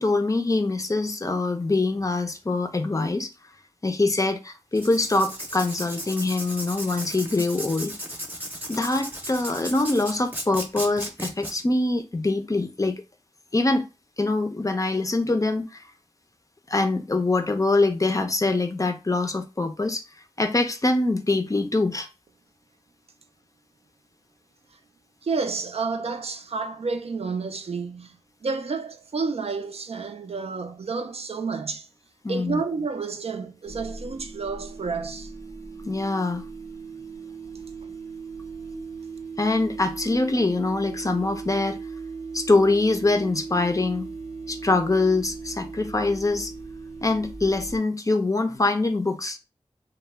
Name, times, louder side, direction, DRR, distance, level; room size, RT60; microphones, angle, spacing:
voice 1, 0.0-3.3 3.8-7.9 8.7-13.0 13.5-13.9 14.2-15.8 16.7-20.0 20.4-22.1 32.2-32.6 35.8-36.4 39.4-41.8 42.3-44.1 44.5-46.5 47.0-49.4, left 2 dB, 30° left, 0.4 m, -24 dB
Writing, 4.7-11.5, right 1 dB, 15° right, 0.7 m, -36 dB
voice 2, 25.2-28.2 28.4-31.9 32.3-35.3, right 4 dB, 65° right, 0.4 m, -30 dB
sound 1, 33.6-47.8, right 4 dB, 85° right, 0.8 m, -38 dB
2.1 x 2.1 x 3.3 m
wide cardioid pair, 50°, 11 cm